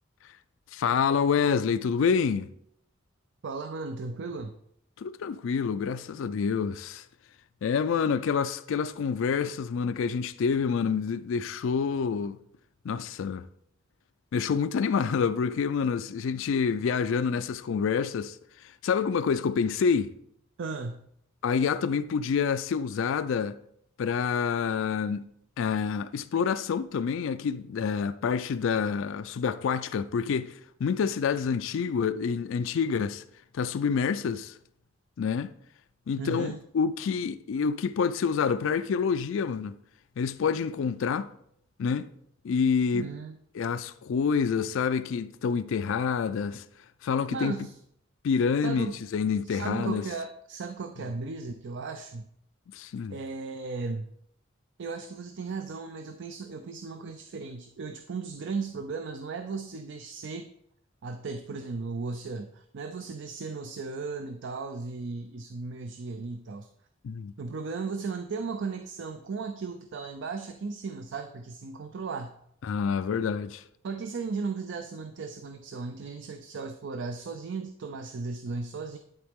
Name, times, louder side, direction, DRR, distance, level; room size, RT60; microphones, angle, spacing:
voice 1, 0.7-2.5 5.0-7.1 7.6-12.4 12.8-13.4 14.3-20.1 21.4-23.6 24.0-25.3 25.6-33.2 33.5-34.6 35.2-35.5 36.1-39.8 40.2-41.3 41.8-42.1 42.4-43.0 43.6-46.6 47.0-47.6 48.2-50.0 52.7-53.2 67.0-67.3 72.6-73.6, left 6 dB, 70° left, 0.4 m, -27 dB
voice 2, 3.4-4.6 20.6-21.1 36.2-36.6 42.9-43.4 47.3-47.7 48.6-49.0 49.4-52.3 53.1-54.1 54.8-60.5 61.0-66.7 67.4-72.4 73.8-79.0, right 4 dB, 65° right, 0.5 m, -36 dB
11.5 x 3.9 x 3.6 m
head